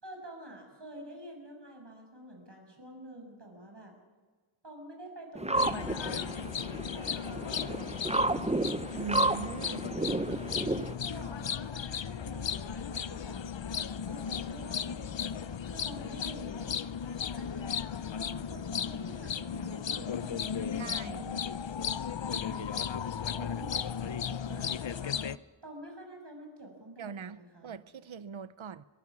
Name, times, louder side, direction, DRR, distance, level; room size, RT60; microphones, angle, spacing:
voice 1, 0.0-3.9 4.6-6.5 6.9-8.1 9.6-13.4 14.0-15.2 15.6-16.8 17.4-17.6 18.1-21.4 22.3-25.2 25.6-27.7, right 1 dB, 55° right, 2 dB, 6.4 m, -48 dB
sound 1, 5.3-10.9, right 2 dB, 15° right, 0.8 m, -32 dB
sound 2, 5.5-25.4, left 7 dB, 65° left, 0.7 m, -35 dB
voice 2, 9.0-9.9 20.8-21.2 27.0-28.8, right 6 dB, 75° right, 15 dB, 0.8 m, -41 dB
24.0 x 22.0 x 6.2 m, 1.4 s
wide cardioid pair, 45°, 49 cm